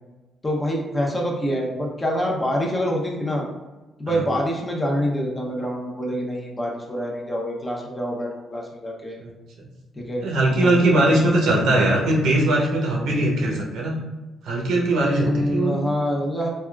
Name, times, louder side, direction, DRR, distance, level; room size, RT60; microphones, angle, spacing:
voice 1, 0.4-3.4 4.0-9.2 10.0-11.2 15.0-16.5, equal, 20° left, -2 dB, 0.7 m, -26 dB
voice 2, 10.2-14.0 14.4-15.9, right 1 dB, 80° right, -2 dB, 0.8 m, -20 dB
3.4 x 2.3 x 2.3 m, 1.2 s
cardioid pair, 90°, 0 cm